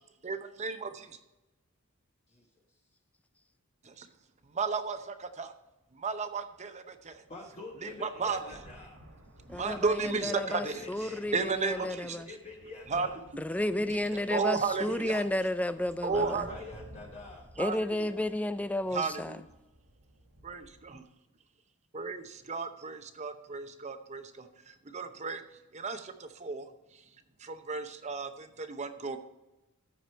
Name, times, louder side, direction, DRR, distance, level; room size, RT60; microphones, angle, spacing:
voice 1, 0.2-1.2 3.8-4.1 4.4-5.5 5.9-7.2 7.8-8.6 9.5-12.2 12.9-13.2 14.3-15.3 16.0-16.6 17.6-18.2 18.9-19.4 20.4-21.1 21.9-29.2, right 4 dB, 30° right, 0.7 m, -34 dB
sound 1, 4.5-4.6 5.2-5.3 6.6-6.7 7.0-21.0, right 1 dB, 65° right, 2.1 m, -55 dB
voice 2, 7.3-9.0 9.7-11.3 11.7-11.9 12.3-13.2 13.8-15.0 16.1-17.5, left 3 dB, 30° left, 1.2 m, -46 dB
voice 3, 10.2-12.3 13.4-16.4 17.6-19.4, left 1 dB, 5° left, 0.3 m, -32 dB
14.0 x 4.9 x 4.4 m
head